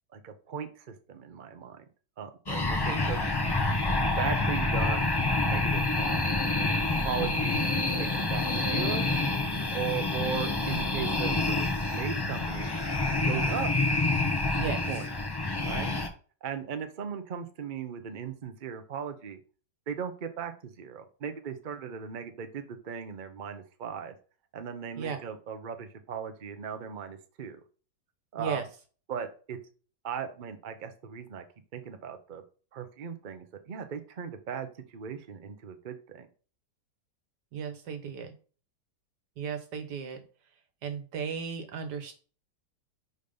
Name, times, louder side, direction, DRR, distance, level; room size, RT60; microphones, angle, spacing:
voice 1, 0.1-1.8 2.2-3.3 3.6-3.8 4.2-5.1 5.4-6.2 7.0-9.1 9.7-12.7 13.2-13.7 14.9-15.1 15.6-15.9 16.4-19.4 19.9-24.1 24.5-27.6 28.3-28.6 29.1-29.6 30.0-31.4 31.7-32.4 32.7-34.7 34.9-36.3, right 7 dB, 45° right, 7 dB, 0.6 m, -37 dB
sound 1, 2.5-16.1, left 2 dB, 35° left, 0.4 m, -28 dB
voice 2, 7.2-7.5 14.6-14.9 25.0-25.2 28.4-28.6 37.5-38.4 39.4-40.2 40.8-42.1, right 6 dB, 80° right, 5 dB, 1.6 m, -35 dB
5.1 x 4.0 x 5.4 m, 0.39 s
omnidirectional pair, 1.8 m